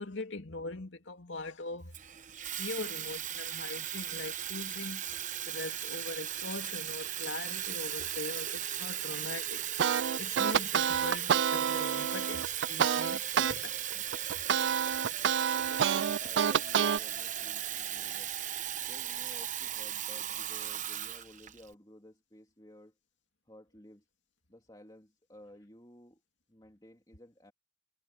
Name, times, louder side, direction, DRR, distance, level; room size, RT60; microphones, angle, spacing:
voice 1, 0.0-1.9 2.6-5.0 5.5-9.6 10.2-13.2 13.6-14.0, left 2 dB, 80° left, 2.5 m, -41 dB
Water tap faucet / Fill (with liquid), 1.9-21.7, right 10 dB, 40° right, 1.0 m, -37 dB
sound 1, 9.8-13.5 13.9-17.0, right 8 dB, 70° right, 0.4 m, -28 dB
voice 2, 15.5-18.3 18.8-22.9 23.5-24.1 24.5-26.2 26.5-27.5, left 1 dB, 20° left, 2.7 m, -55 dB
head